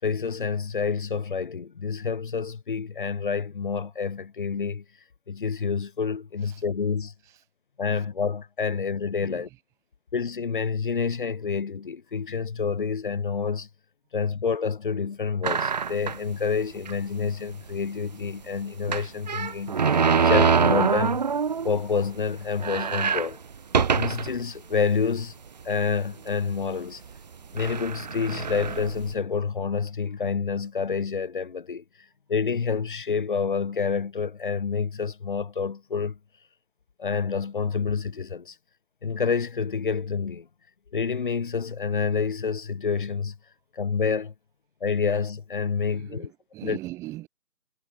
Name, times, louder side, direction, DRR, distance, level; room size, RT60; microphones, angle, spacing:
voice 1, 0.0-4.8 5.3-7.1 7.8-9.5 10.1-13.7 14.1-19.9 20.2-21.2 21.6-23.4 23.9-25.3 25.6-27.0 27.5-31.8 32.3-36.2 37.0-38.5 39.0-40.5 40.9-43.3 43.7-44.3 44.8-46.3 46.6-46.8, left 5 dB, 30° left, 4.9 m, -28 dB
voice 2, 9.2-9.6 45.9-47.3, right 17 dB, 5° right, 4.0 m, -41 dB
sound 1, 15.4-16.3 16.9-17.0 17.2-17.3 18.9-21.8 22.2-22.3 22.5-24.4 25.0-25.1 26.0-26.3 27.1-27.2 27.6-29.1, right 6 dB, 25° right, 3.7 m, -24 dB
figure-of-eight pair, 165°, 49 cm